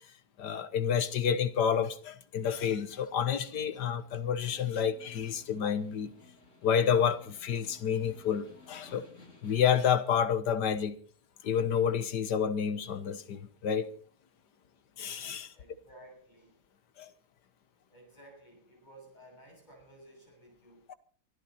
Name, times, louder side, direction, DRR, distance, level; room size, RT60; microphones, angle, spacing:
voice 1, 0.4-6.1 6.6-9.1 9.4-11.0 11.4-13.9 15.0-15.5 17.0-17.1 20.9-21.0, left 8 dB, 80° left, 1.8 m, -29 dB
Snare drum, 2.7-10.0, left 3 dB, 50° left, 5.2 m, -58 dB
voice 2, 15.5-16.6 17.9-21.0, right 1 dB, 25° left, 7.5 m, -55 dB
23.5 x 14.0 x 4.2 m
omnidirectional pair, 1.8 m